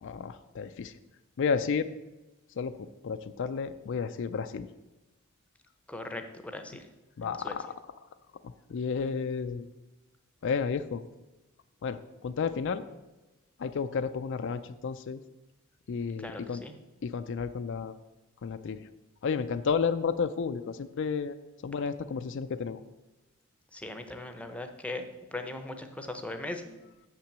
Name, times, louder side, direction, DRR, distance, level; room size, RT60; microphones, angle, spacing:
voice 1, 0.0-0.9 1.4-1.9 2.6-4.7 7.2-7.7 8.4-9.7 10.4-11.0 11.8-12.8 13.6-15.2 15.9-16.6 17.0-18.0 18.4-18.9 19.2-21.4 21.6-22.8, left 5 dB, 60° left, 11 dB, 0.4 m, -32 dB
voice 2, 5.9-6.9 7.2-7.6 16.2-16.7 23.7-26.8, left 2 dB, 5° left, 7 dB, 0.7 m, -39 dB
6.8 x 5.8 x 7.4 m, 1.1 s
head